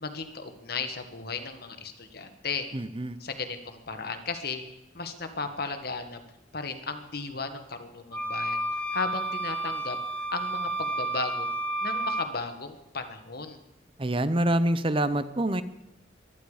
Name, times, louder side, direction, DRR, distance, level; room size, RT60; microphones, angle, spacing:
voice 1, 0.0-2.7 3.2-4.6 4.9-6.2 6.5-10.0 10.3-11.5 11.8-13.6, left 4 dB, 55° left, 7 dB, 1.5 m, -35 dB
voice 2, 2.7-3.2 14.0-15.6, right 1 dB, 30° right, 13 dB, 0.8 m, -26 dB
sound 1, 8.1-12.3, right 1 dB, 10° left, 1.1 m, -31 dB
23.5 x 10.5 x 5.0 m, 0.92 s
head